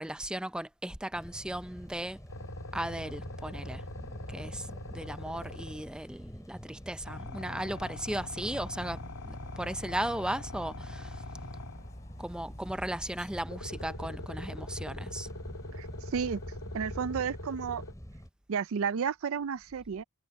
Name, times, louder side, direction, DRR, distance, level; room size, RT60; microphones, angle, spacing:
voice 1, 0.0-2.2 2.7-3.8 4.3-9.0 9.3-11.2 12.2-15.3, right 1 dB, 5° right, 0.5 m, -36 dB
sound 1, 1.1-18.3, equal, 15° left, 5.4 m, -48 dB
sound 2, 2.3-6.1 7.1-12.0 13.5-17.9, left 1 dB, 85° left, 2.8 m, -43 dB
Dog, 8.1-13.4, equal, 30° left, 8.0 m, -47 dB
voice 2, 15.7-16.4 16.7-17.8 18.5-20.0, right 6 dB, 60° right, 0.4 m, -32 dB
head